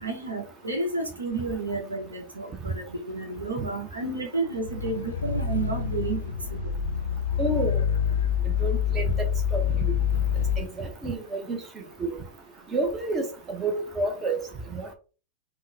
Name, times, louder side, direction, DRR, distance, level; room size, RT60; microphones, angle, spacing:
voice 1, 0.0-6.2 6.5-6.7, right 3 dB, 80° right, 0.8 m, -31 dB
sound 1, 4.6-10.7, left 8 dB, 70° left, 0.3 m, -26 dB
voice 2, 7.4-7.8 8.4-9.3 9.5-9.6 10.6-11.6 12.0-12.2 12.7-14.4 14.7-14.9, right 2 dB, 25° right, 0.6 m, -29 dB
3.7 x 2.0 x 2.6 m
figure-of-eight pair, 90°, 0 cm